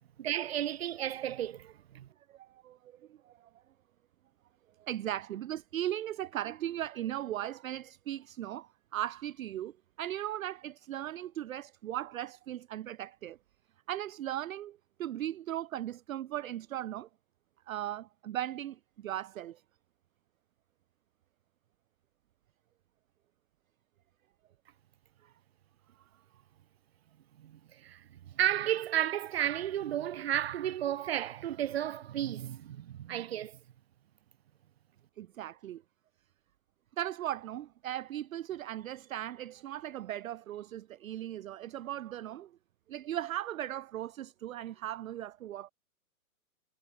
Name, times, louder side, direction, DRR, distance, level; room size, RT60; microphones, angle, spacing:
voice 1, 0.2-2.1 27.4-33.6, right 11 dB, 45° right, 1.4 m, -33 dB
voice 2, 2.3-2.8 3.1-3.5 4.8-9.7 10.0-13.4 13.9-17.1 17.7-19.6 35.2-35.8 37.0-42.5 42.9-45.7, right 12 dB, 70° right, 0.6 m, -38 dB
hypercardioid pair, 170°, 44 cm